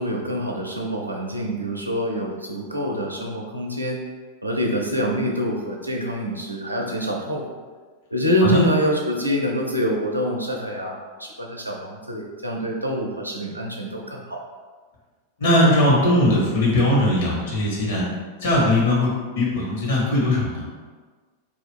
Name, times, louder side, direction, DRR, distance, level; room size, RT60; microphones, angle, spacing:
voice 1, 0.0-4.0 4.4-7.5 8.1-14.4, equal, 85° right, -1 dB, 0.4 m, -25 dB
voice 2, 15.4-18.0 18.4-20.7, left 1 dB, 55° left, -5 dB, 1.1 m, -19 dB
2.4 x 2.3 x 3.5 m, 1.4 s
figure-of-eight pair, 90°, 0 cm